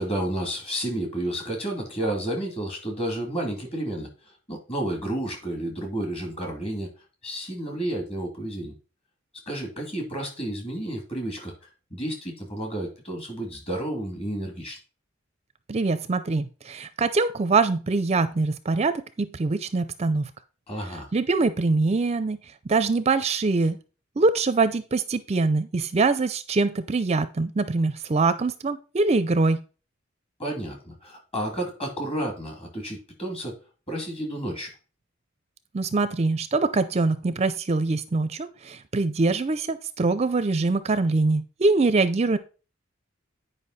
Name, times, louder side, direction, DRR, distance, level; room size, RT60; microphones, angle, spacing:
voice 1, 0.0-4.1 4.5-6.9 7.2-8.7 9.5-14.8 20.7-21.1 30.4-33.6 33.9-34.7, right 1 dB, 30° left, 2 dB, 2.7 m, -31 dB
voice 2, 15.7-18.9 19.2-20.2 21.1-22.4 22.7-23.8 24.2-29.6 35.7-42.4, right 3 dB, 35° right, 13 dB, 0.5 m, -23 dB
9.5 x 5.2 x 4.1 m, 0.34 s
head